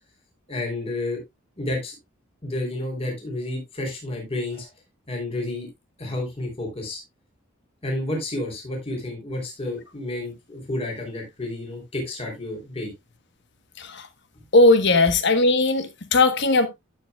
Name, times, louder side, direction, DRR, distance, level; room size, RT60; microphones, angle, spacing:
voice 1, 0.5-1.2 1.6-1.9 2.4-4.7 5.1-5.7 6.0-7.0 7.8-12.9, left 1 dB, 30° left, 3.1 m, -30 dB
voice 2, 14.5-16.7, left 2 dB, 55° left, 1.1 m, -18 dB
12.0 x 7.4 x 2.3 m
head